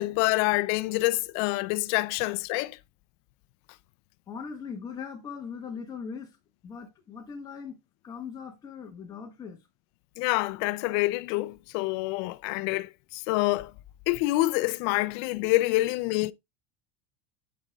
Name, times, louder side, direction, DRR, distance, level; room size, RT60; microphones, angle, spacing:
voice 1, 0.0-2.8 10.2-13.7 14.1-16.3, left 20 dB, 60° left, 0.5 m, -27 dB
voice 2, 4.3-6.4 6.6-7.8 8.0-9.6, left 6 dB, 25° left, 1.5 m, -40 dB
11.0 x 5.1 x 2.3 m
supercardioid pair, 150°, 16 cm